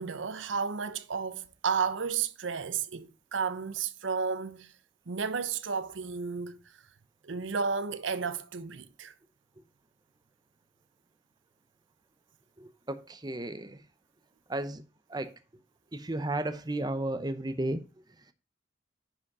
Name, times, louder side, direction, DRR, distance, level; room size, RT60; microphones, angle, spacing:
voice 1, 0.0-4.7 5.1-6.6 7.2-9.1, right 5 dB, 80° right, 0.7 m, -32 dB
voice 2, 12.6-13.8 14.5-14.8 15.1-15.3 15.9-17.8, right 1 dB, 20° right, 0.7 m, -33 dB
10.0 x 5.2 x 4.8 m
head